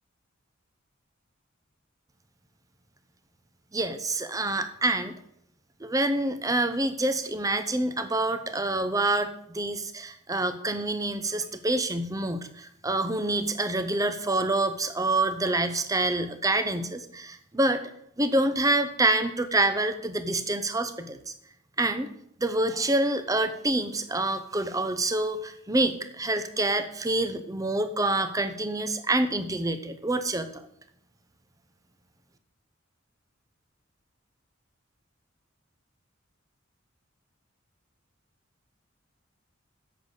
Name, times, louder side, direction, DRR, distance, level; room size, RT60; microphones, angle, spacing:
voice 1, 3.7-5.1 5.8-17.8 18.2-21.2 21.8-22.1 22.4-30.7, right 2 dB, 15° right, 10 dB, 0.8 m, -27 dB
7.9 x 6.7 x 8.1 m, 0.71 s
head